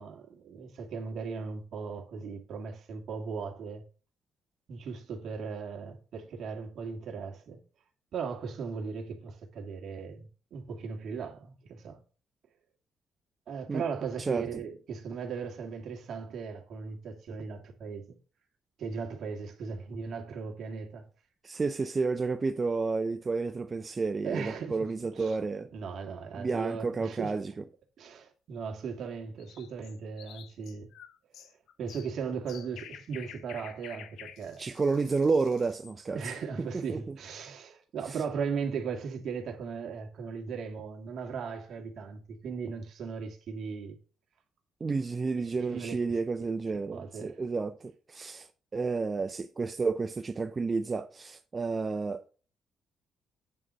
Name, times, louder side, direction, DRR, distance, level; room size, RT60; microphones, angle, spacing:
voice 1, 0.0-3.8 4.7-7.6 8.1-12.0 13.5-18.0 18.8-21.1 24.2-24.8 25.1-25.4 25.7-27.4 28.0-30.9 31.4-31.5 31.8-34.7 36.1-44.0 45.4-45.9 46.9-47.4, right 5 dB, 65° right, 2.0 m, -37 dB
voice 2, 21.4-25.7 26.4-27.6 34.6-36.2 36.6-37.2 38.1-38.2 44.8-52.3, right 4 dB, 30° right, 0.5 m, -31 dB
sound 1, 29.4-36.0, left 9 dB, 80° left, 0.8 m, -50 dB
9.0 x 3.9 x 6.2 m
cardioid pair, 90°, 0 cm